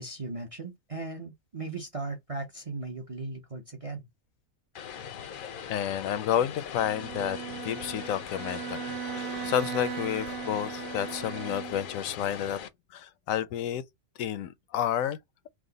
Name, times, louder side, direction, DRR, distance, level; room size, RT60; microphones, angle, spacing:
voice 1, 0.0-4.0, right 3 dB, 40° right, 0.5 m, -37 dB
Vehicle, 4.7-12.7, left 8 dB, 60° left, 0.5 m, -41 dB
voice 2, 5.7-12.6 12.9-13.8 14.2-15.2, left 10 dB, 85° left, 1.0 m, -30 dB
Bowed string instrument, 6.7-12.0, right 10 dB, 70° right, 0.9 m, -38 dB
4.7 x 2.0 x 3.8 m
omnidirectional pair, 1.4 m